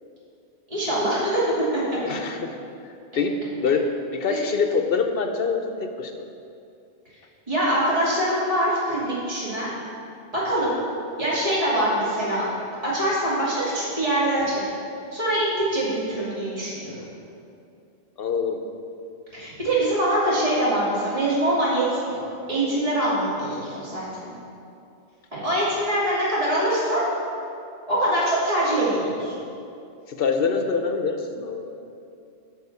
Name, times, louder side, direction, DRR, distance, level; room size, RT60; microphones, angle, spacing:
voice 1, 0.7-1.4 1.7-2.0 4.3-4.4 7.5-9.7 10.3-10.8 11.2-12.4 12.8-14.7 15.1-17.0 19.3-22.2 22.5-24.1 25.3-27.0 27.9-29.3, right 1 dB, 35° right, -9 dB, 2.7 m, -24 dB
voice 2, 2.0-2.5 3.1-6.3 18.2-18.6 30.1-31.7, left 5 dB, 60° left, 5 dB, 0.9 m, -25 dB
9.7 x 4.9 x 6.8 m, 2.6 s
omnidirectional pair, 1.1 m